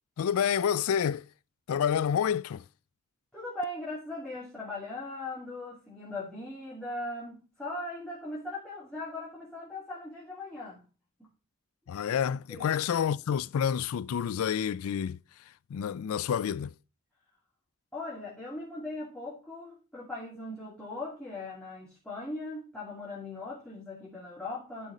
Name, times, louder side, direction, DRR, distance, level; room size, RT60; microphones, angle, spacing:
voice 1, 0.2-1.3 1.7-2.6 11.9-15.2 15.7-16.7, left 8 dB, 75° left, 0.3 m, -28 dB
voice 2, 3.3-10.8 12.5-12.7 17.9-24.9, left 2 dB, 5° left, 2.7 m, -39 dB
12.0 x 5.1 x 4.1 m
head